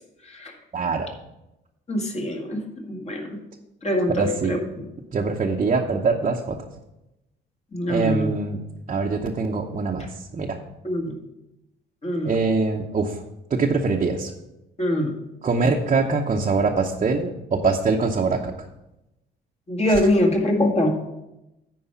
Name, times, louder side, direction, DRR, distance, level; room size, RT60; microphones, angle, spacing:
voice 1, 0.7-1.1 4.2-4.6 5.1-6.6 7.9-8.6 8.9-10.1 10.3-10.6 12.2-13.2 13.5-14.3 15.4-18.5, right 4 dB, 35° right, 0 dB, 0.8 m, -23 dB
voice 2, 1.9-3.4 3.8-4.9 7.7-8.3 10.8-11.2 12.0-12.4 14.8-15.2 19.7-20.9, left 1 dB, 35° left, 1 dB, 2.0 m, -24 dB
9.7 x 4.7 x 5.8 m, 0.94 s
cardioid pair, 90°, 20 cm